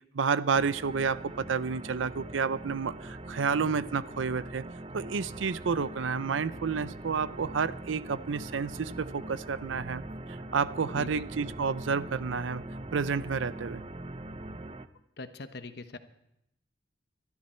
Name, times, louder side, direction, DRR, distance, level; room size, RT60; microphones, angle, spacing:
voice 1, 0.2-4.6 4.9-10.0 10.5-12.6 12.9-13.8, right 5 dB, 90° right, 16 dB, 0.5 m, -30 dB
sound 1, 0.5-14.9, right 1 dB, 30° right, 0.6 m, -42 dB
voice 2, 10.9-11.6 15.2-16.0, left 3 dB, 60° left, 9 dB, 1.0 m, -43 dB
22.5 x 12.5 x 4.4 m, 0.81 s
head